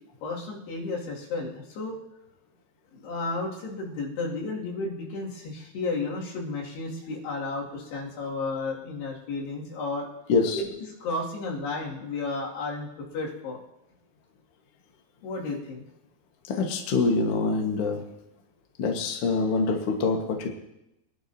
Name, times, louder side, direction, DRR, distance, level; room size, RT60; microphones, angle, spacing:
voice 1, 0.2-2.0 2.9-10.1 10.5-10.7 11.0-12.9 13.1-13.6 15.2-15.9, left 3 dB, 85° left, -4 dB, 4.5 m, -32 dB
voice 2, 16.5-18.0 18.8-20.5, left 4 dB, 55° left, 2 dB, 1.7 m, -25 dB
23.5 x 11.0 x 2.8 m, 0.87 s
omnidirectional pair, 4.6 m